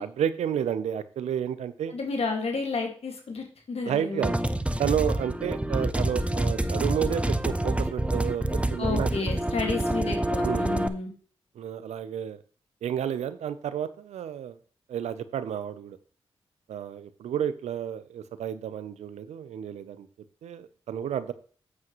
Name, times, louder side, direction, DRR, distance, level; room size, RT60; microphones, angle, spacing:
voice 1, 0.0-1.9 3.8-4.3 4.8-9.3 10.4-10.7 11.6-12.4 12.8-14.6 14.9-16.0 16.7-20.1 20.4-21.3, right 9 dB, 85° right, 14 dB, 0.6 m, -31 dB
voice 2, 1.9-4.3 8.8-11.1, left 4 dB, 65° left, 2 dB, 1.9 m, -31 dB
sound 1, 4.2-10.9, right 1 dB, 10° right, 0.8 m, -27 dB
8.2 x 7.4 x 3.0 m, 0.43 s
supercardioid pair, 40°, 11 cm